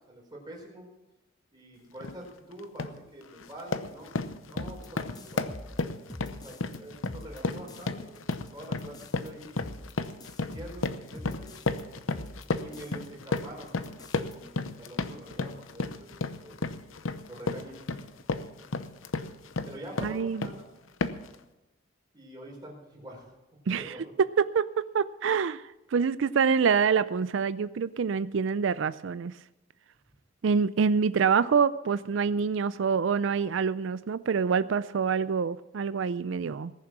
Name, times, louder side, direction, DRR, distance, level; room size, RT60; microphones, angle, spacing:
voice 1, 0.1-0.9 1.5-4.1 4.5-5.5 6.2-8.1 8.5-9.7 10.4-12.2 12.6-13.9 14.2-16.6 17.3-17.8 19.6-20.7 22.1-23.3 23.8-24.0, right 1 dB, 20° right, -1 dB, 4.4 m, -46 dB
sound 1, 2.0-2.2 2.6-3.0 3.4-20.6 21.0-21.4, left 3 dB, 85° left, 0.8 m, -33 dB
sound 2, 4.5-6.8 7.0-11.8 12.1-13.1 13.4-13.5 13.7-14.3, left 1 dB, 20° left, 0.9 m, -45 dB
voice 2, 20.0-20.5 23.7-23.9 24.4-29.3 30.4-36.7, right 6 dB, 70° right, 15 dB, 0.4 m, -26 dB
19.5 x 7.4 x 6.1 m, 1.0 s
head